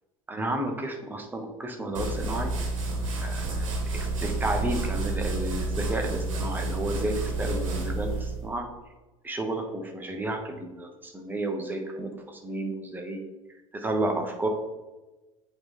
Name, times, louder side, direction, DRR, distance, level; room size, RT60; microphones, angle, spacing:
voice 1, 0.3-2.5 3.2-8.7 9.2-13.2 13.7-14.5, right 1 dB, 10° right, 3 dB, 1.0 m, -32 dB
sound 1, 1.9-8.5, right 2 dB, 70° right, 1.2 m, -30 dB
7.7 x 3.2 x 3.8 m, 1.1 s
figure-of-eight pair, 65°, 17 cm